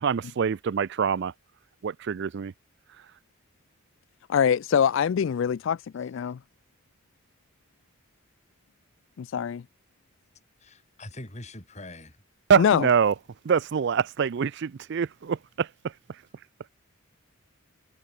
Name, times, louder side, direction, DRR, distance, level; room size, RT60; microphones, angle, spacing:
voice 1, 0.0-1.3 1.8-2.5 12.5-13.1 13.4-15.7, right 6 dB, 55° right, 0.4 m, -25 dB
voice 2, 4.3-6.4 9.2-9.6 12.6-12.9, left 7 dB, 60° left, 0.3 m, -24 dB
voice 3, 10.6-12.2, left 1 dB, 30° left, 5.0 m, -43 dB
head